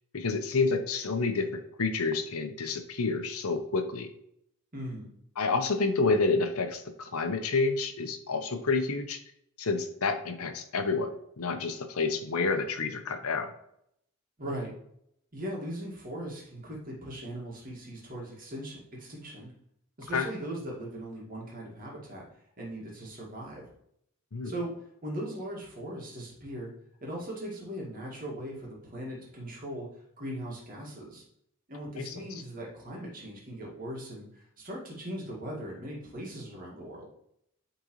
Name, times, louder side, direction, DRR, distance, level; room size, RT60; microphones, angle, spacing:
voice 1, 0.1-4.1 5.4-9.2 9.6-13.5 20.1-20.3 24.3-24.5 32.0-32.2, left 4 dB, 85° left, 7 dB, 0.8 m, -29 dB
voice 2, 4.7-5.1 14.4-14.7 15.3-19.5 20.0-22.2 22.6-23.6 24.4-24.7 25.0-26.7 27.0-29.9 30.2-31.2 31.7-37.1, right 1 dB, 40° right, -3 dB, 2.0 m, -39 dB
8.7 x 3.9 x 3.1 m, 0.74 s
head